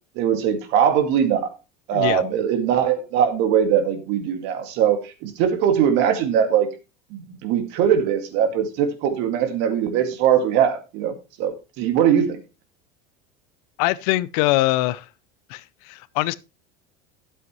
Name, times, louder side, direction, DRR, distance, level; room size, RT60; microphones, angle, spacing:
voice 1, 0.2-1.5 1.9-6.7 7.1-12.4, right 8 dB, 60° right, 2.1 m, -21 dB
voice 2, 1.9-2.2 13.8-15.1 15.5-16.3, left 18 dB, 70° left, 0.6 m, -23 dB
12.5 x 7.8 x 3.0 m
cardioid pair, 150°, 20 cm